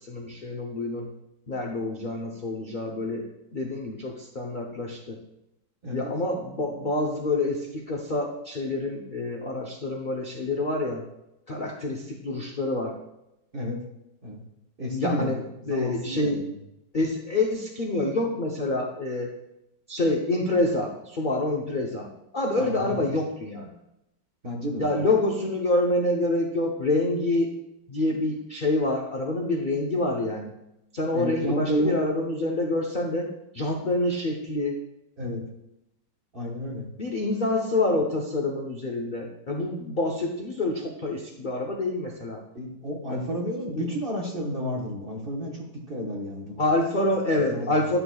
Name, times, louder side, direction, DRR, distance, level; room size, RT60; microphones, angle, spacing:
voice 1, 0.0-1.1 1.5-5.2 5.9-11.0 11.5-12.9 14.9-16.4 16.9-19.3 19.9-22.1 22.3-23.7 24.8-27.5 27.9-30.5 30.9-33.3 33.5-34.8 37.0-42.4 43.1-43.2 43.7-43.9 46.6-48.0, left 2 dB, 50° left, 0 dB, 0.6 m, -27 dB
voice 2, 14.8-15.4 15.7-16.5 22.6-23.1 24.4-25.0 31.1-32.0 35.2-35.4 36.3-36.9 42.5-46.6 47.5-47.9, equal, 35° right, -2 dB, 1.3 m, -31 dB
10.5 x 6.8 x 2.3 m, 0.87 s
omnidirectional pair, 1.9 m